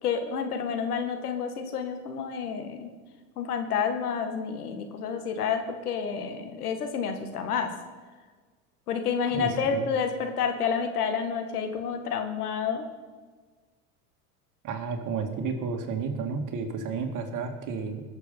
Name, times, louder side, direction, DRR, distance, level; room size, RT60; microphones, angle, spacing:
voice 1, 0.0-2.9 3.4-7.7 8.9-12.9, left 6 dB, 80° left, 6 dB, 1.9 m, -29 dB
voice 2, 9.3-9.9 14.6-18.0, right 5 dB, 45° right, 4 dB, 2.3 m, -32 dB
21.5 x 7.2 x 5.5 m, 1.5 s
hypercardioid pair, 85°, 45 cm